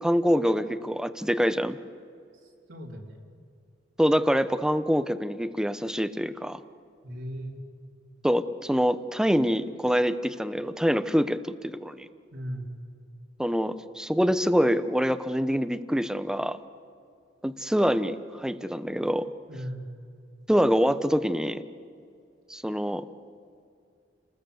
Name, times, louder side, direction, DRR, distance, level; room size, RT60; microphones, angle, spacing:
voice 1, 0.0-1.8 4.0-6.6 8.2-12.1 13.4-16.6 17.4-19.3 20.5-21.6 22.5-23.1, equal, 5° right, 12 dB, 0.8 m, -25 dB
voice 2, 2.4-3.2 7.0-7.6 12.3-12.7 19.5-19.8, equal, 75° right, -2 dB, 3.5 m, -37 dB
30.0 x 20.0 x 8.0 m, 2.3 s
head